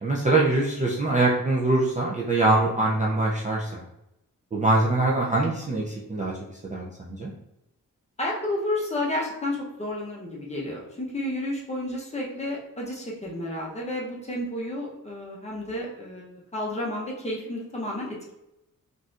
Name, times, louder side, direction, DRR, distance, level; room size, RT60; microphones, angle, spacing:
voice 1, 0.0-3.8 4.5-6.3 6.6-7.3, right 2 dB, 25° right, -4 dB, 0.3 m, -23 dB
voice 2, 8.2-16.3 16.5-18.3, left 1 dB, 20° left, -3 dB, 0.7 m, -31 dB
4.0 x 2.5 x 2.4 m, 0.86 s
wide cardioid pair, 170°, 33 cm